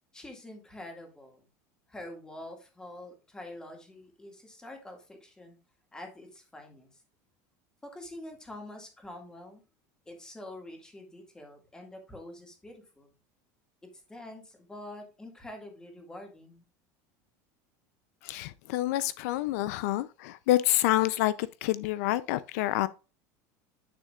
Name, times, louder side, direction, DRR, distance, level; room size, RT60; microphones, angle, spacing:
voice 1, 0.1-1.4 1.9-5.6 5.9-6.9 7.8-9.6 10.1-13.1 13.9-16.6, left 1 dB, 10° left, 2.0 m, -46 dB
voice 2, 18.2-22.9, left 15 dB, 75° left, 0.5 m, -28 dB
9.7 x 6.5 x 2.4 m
cardioid pair, 165°, 9 cm